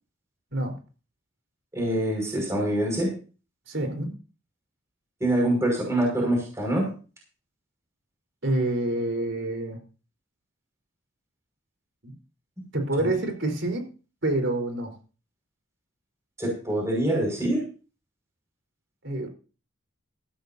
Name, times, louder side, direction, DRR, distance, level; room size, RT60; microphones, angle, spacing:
voice 1, 1.7-3.1 5.2-6.9 13.0-13.1 16.4-17.6, right 1 dB, 15° right, -1 dB, 5.5 m, -25 dB
voice 2, 3.7-4.1 8.4-9.8 12.0-12.1 12.7-13.9 14.2-14.9 19.0-19.3, right 1 dB, 65° right, 4 dB, 4.0 m, -27 dB
14.5 x 14.0 x 2.7 m, 0.36 s
head